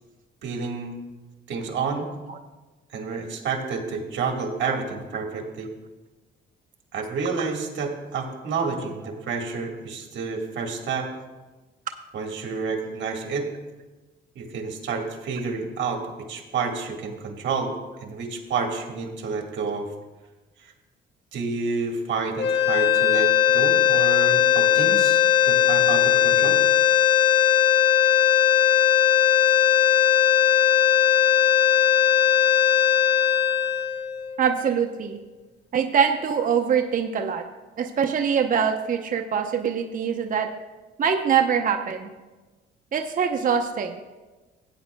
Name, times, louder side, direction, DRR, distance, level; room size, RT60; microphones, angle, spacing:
voice 1, 0.4-1.0 1.5-2.1 2.9-5.7 6.9-11.1 12.1-13.5 14.3-16.0 16.3-17.7 18.0-19.9 20.6-20.7 21.3-25.2 25.4-26.6, right 4 dB, 65° right, 2 dB, 1.6 m, -29 dB
sound 1, 22.4-34.6, left 10 dB, 60° left, 1.7 m, -19 dB
voice 2, 34.4-35.2 35.7-37.4 37.8-40.5 41.0-42.1 42.9-43.9, right 7 dB, 45° right, 4 dB, 0.7 m, -23 dB
16.5 x 8.9 x 2.2 m, 1.2 s
cardioid pair, 90°, 20 cm